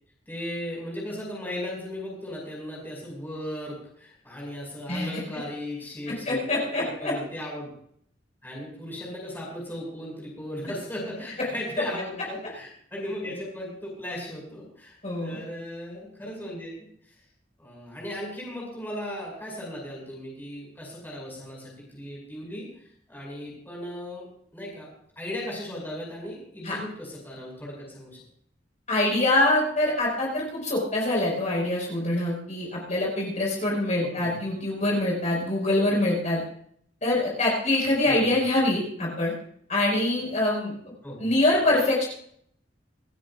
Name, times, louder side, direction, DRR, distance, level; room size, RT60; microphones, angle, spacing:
voice 1, 0.3-7.7 8.4-16.9 17.6-22.7 23.1-24.9 25.2-28.2 34.1-34.4 38.1-38.3 41.0-41.2, left 1 dB, 10° left, -3 dB, 5.5 m, -37 dB
voice 2, 6.1-7.1 15.0-15.4 26.6-26.8 28.9-36.4 37.0-39.3 39.7-40.7 41.2-42.1, left 1 dB, 40° left, -3 dB, 5.2 m, -24 dB
26.5 x 10.0 x 2.5 m, 0.65 s
head